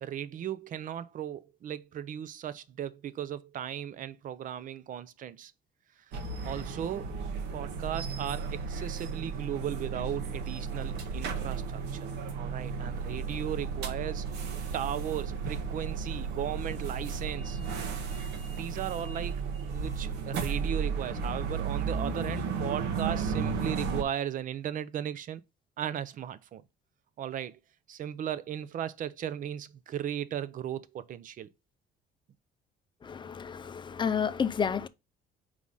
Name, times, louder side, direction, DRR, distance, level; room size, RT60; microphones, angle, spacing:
voice 1, 0.0-5.5 6.4-7.2 7.5-12.1 12.4-14.3 14.7-17.6 18.5-19.4 19.7-25.4 25.8-26.6 27.2-27.6 27.9-31.5, right 10 dB, 50° right, 0.6 m, -36 dB
sound 1, 6.1-24.0, right 5 dB, 80° right, 1.2 m, -34 dB
voice 2, 33.0-34.9, left 7 dB, 30° left, 0.5 m, -30 dB
4.9 x 3.8 x 5.4 m
cardioid pair, 110°, 17 cm